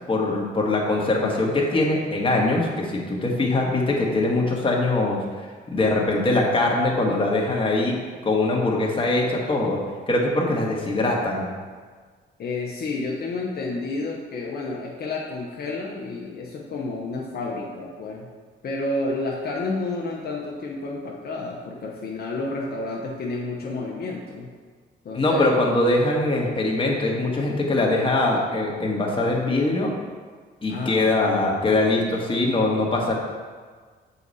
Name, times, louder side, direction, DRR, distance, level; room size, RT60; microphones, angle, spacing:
voice 1, 0.1-5.2 5.7-8.0 8.2-9.8 10.1-11.5 25.1-29.9 30.6-33.1, left 2 dB, 25° left, -2 dB, 1.4 m, -22 dB
voice 2, 12.4-18.3 18.6-24.5 25.0-25.5 30.7-31.0, left 2 dB, 55° left, -3 dB, 0.9 m, -30 dB
6.9 x 4.8 x 4.1 m, 1.5 s
cardioid pair, 90°, 20 cm